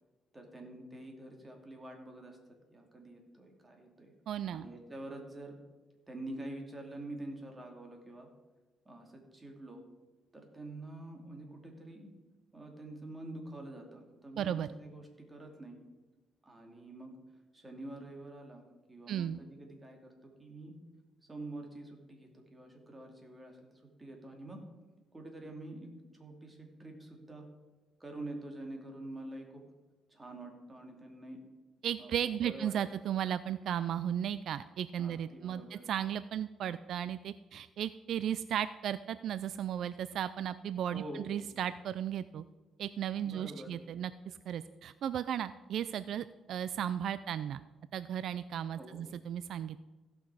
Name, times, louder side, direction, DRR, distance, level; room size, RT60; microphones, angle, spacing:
voice 1, 0.3-4.1 4.5-5.5 6.1-8.3 8.8-9.8 10.3-12.1 12.5-15.8 16.4-17.1 17.5-20.7 21.3-24.6 25.1-27.5 28.0-29.6 30.1-31.4 32.0-32.1 32.4-32.7 35.0-35.9 40.9-41.3 43.2-43.8 48.8-49.0, right 1 dB, 20° right, 2 dB, 2.5 m, -47 dB
voice 2, 4.3-4.6 14.4-14.7 19.1-19.4 31.8-42.4 42.8-47.6 47.9-49.8, right 10 dB, 70° right, 14 dB, 0.3 m, -35 dB
16.0 x 6.0 x 4.8 m, 1.2 s
cardioid pair, 90°, 0 cm